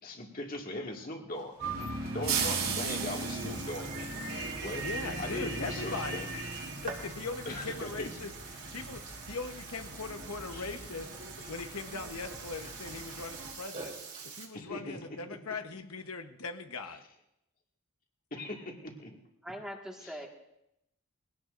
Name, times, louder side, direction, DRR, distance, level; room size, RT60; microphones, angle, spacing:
voice 1, 0.0-1.6 2.1-4.9 5.2-6.3 7.5-8.1 10.5-10.7 11.4-11.5 14.5-15.0 18.3-19.2 20.0-20.2, left 1 dB, 40° left, 1 dB, 2.1 m, -40 dB
Burping eructation, 1.3-14.4, right 5 dB, 35° right, 3.1 m, -47 dB
sound 1, 1.6-13.5, right 4 dB, 70° right, 3.2 m, -38 dB
voice 2, 4.8-6.3 6.8-8.3 8.7-11.1 11.5-13.9 14.2-17.0, left 4 dB, 90° left, 6 dB, 1.1 m, -40 dB
voice 3, 19.4-20.3, equal, 5° right, 0 dB, 1.7 m, -41 dB
22.5 x 17.5 x 2.6 m, 0.83 s
head